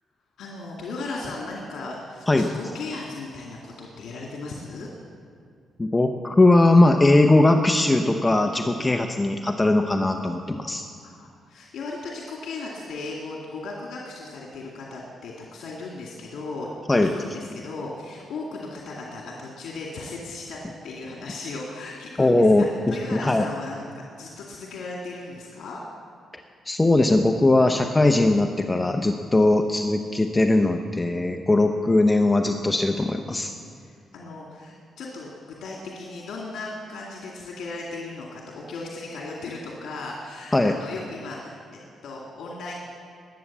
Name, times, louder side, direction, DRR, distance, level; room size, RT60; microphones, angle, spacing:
voice 1, 0.4-4.9 11.0-16.7 17.0-20.6 20.8-25.8 33.9-41.6 42.0-42.7, left 3 dB, 80° left, -2 dB, 2.2 m, -36 dB
voice 2, 5.8-10.9 16.9-17.1 22.2-23.5 26.7-33.5 40.5-40.8, left 2 dB, 15° left, 5 dB, 0.7 m, -20 dB
20.5 x 8.7 x 7.3 m, 2.3 s
cardioid pair, 145°, 0 cm